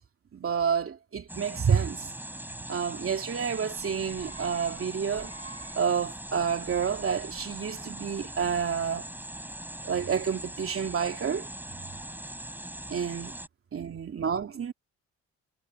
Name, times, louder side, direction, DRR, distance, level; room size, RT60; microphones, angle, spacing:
voice 1, 0.3-2.1 2.7-9.1 9.8-11.5 12.9-13.3 13.7-14.7, right 7 dB, 45° right, 2.9 m, -29 dB
sound 1, 1.3-13.5, right 1 dB, 5° right, 5.4 m, -41 dB
cardioid pair, 90°, 30 cm